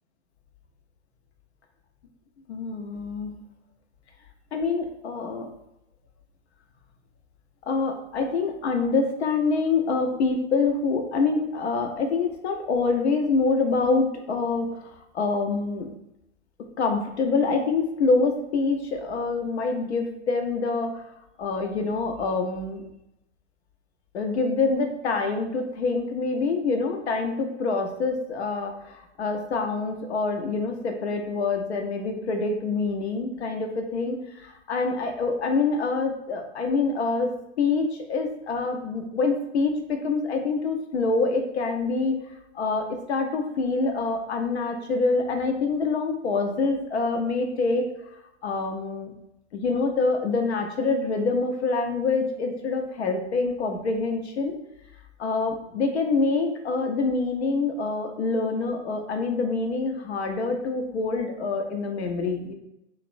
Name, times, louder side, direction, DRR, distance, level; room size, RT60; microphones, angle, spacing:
voice 1, 2.5-3.3 4.5-5.5 7.7-15.9 16.8-21.1 21.4-22.8 24.1-34.2 34.4-42.2 42.5-47.9 48.4-49.1 49.5-54.6 55.2-62.5, left 4 dB, 65° left, 4 dB, 0.6 m, -26 dB
2.9 x 2.0 x 2.5 m, 0.87 s
figure-of-eight pair, 105°, 36 cm